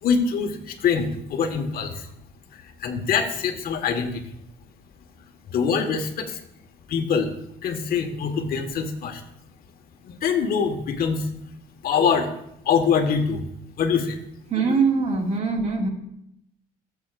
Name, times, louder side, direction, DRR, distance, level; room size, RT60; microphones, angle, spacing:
voice 1, 0.0-2.1 2.5-4.3 5.2-6.4 6.9-7.3 7.6-9.2 10.0-11.3 11.8-12.3 12.6-13.5 13.8-14.2, left 6 dB, 60° left, 4 dB, 1.6 m, -24 dB
voice 2, 14.5-15.9, right 4 dB, 40° right, 1 dB, 2.3 m, -22 dB
17.0 x 8.1 x 2.6 m, 0.77 s
cardioid pair, 110°, 17 cm